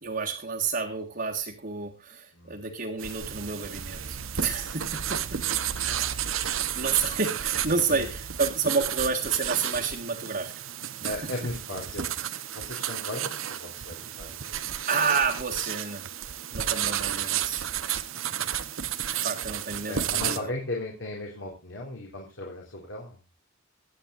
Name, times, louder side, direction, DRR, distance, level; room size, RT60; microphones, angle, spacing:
voice 1, 0.0-5.4 6.4-10.5 11.0-11.2 14.9-16.1 16.5-17.6 19.1-20.5, right 5 dB, 50° right, -3 dB, 1.7 m, -30 dB
sound 1, 3.0-20.4, right 10 dB, 85° right, 1.0 m, -32 dB
voice 2, 11.0-12.1 12.5-14.6 19.9-23.2, left 1 dB, 70° left, -1 dB, 4.0 m, -36 dB
23.5 x 9.3 x 2.6 m, 0.25 s
head